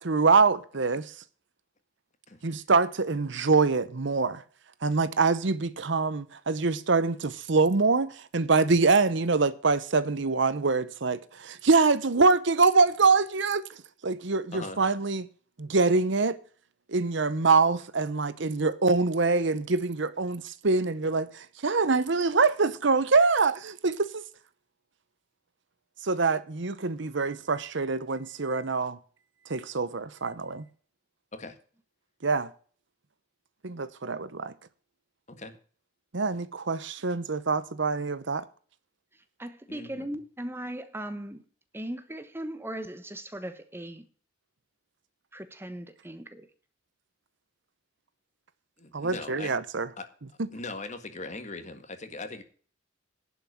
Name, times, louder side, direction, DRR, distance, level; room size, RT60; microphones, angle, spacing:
voice 1, 0.0-1.0 2.4-4.4 4.8-13.6 14.0-15.3 15.6-16.4 16.9-24.2 26.0-29.0 29.5-30.6 32.2-32.5 33.6-34.5 36.1-38.4 48.9-49.9, right 4 dB, 60° right, 0.8 m, -25 dB
voice 2, 14.5-14.8 31.3-31.6 35.3-35.5 39.7-40.1 48.8-49.6 50.0-50.1 50.5-52.4, left 3 dB, 35° left, 1.8 m, -40 dB
voice 3, 39.4-41.4 41.7-44.0 45.3-46.5, right 1 dB, 10° right, 1.1 m, -38 dB
11.5 x 6.0 x 8.5 m
head